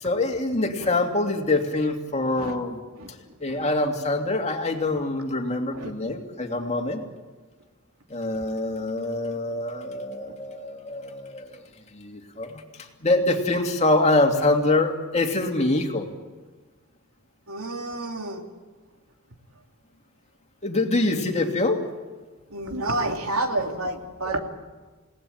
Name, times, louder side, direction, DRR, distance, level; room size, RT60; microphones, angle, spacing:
voice 1, 0.0-2.8 3.4-7.0 8.1-11.6 11.9-12.6 13.0-16.1 20.6-21.8, left 2 dB, 30° left, 3 dB, 2.7 m, -24 dB
voice 2, 17.5-18.4 22.5-24.4, right 2 dB, 85° right, 3 dB, 2.9 m, -29 dB
29.0 x 18.5 x 8.9 m, 1.3 s
head